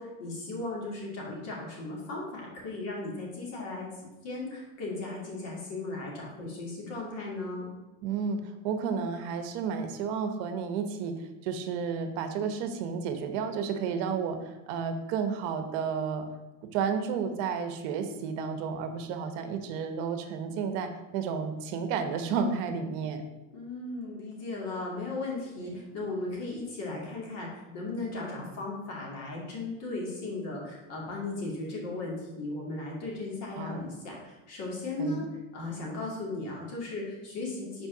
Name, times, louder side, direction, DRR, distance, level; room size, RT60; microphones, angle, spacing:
voice 1, 0.0-7.7 23.5-35.3 35.5-37.9, left 2 dB, 40° left, -2 dB, 2.5 m, -36 dB
voice 2, 8.0-11.1 11.4-16.3 16.7-23.2 25.6-25.8 33.6-33.8 35.0-35.2, right 6 dB, 60° right, 8 dB, 1.0 m, -32 dB
5.6 x 4.7 x 5.8 m, 1.0 s
supercardioid pair, 150°, 38 cm